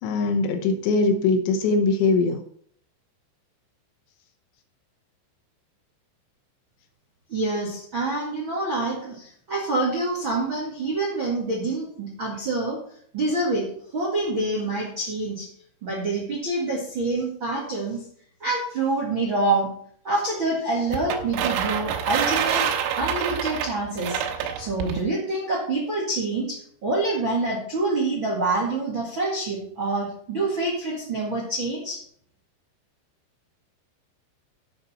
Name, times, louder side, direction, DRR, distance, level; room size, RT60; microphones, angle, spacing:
voice 1, 0.0-2.4, left 3 dB, 75° left, 5 dB, 2.9 m, -21 dB
voice 2, 7.3-12.8 13.1-13.7 13.9-15.5 15.8-18.0 18.4-19.7 20.0-22.7 23.0-32.0, right 2 dB, 55° right, -2 dB, 1.4 m, -26 dB
sound 1, 20.9-25.0, right 8 dB, 90° right, 3.5 m, -27 dB
11.0 x 8.2 x 4.2 m, 0.62 s
omnidirectional pair, 5.7 m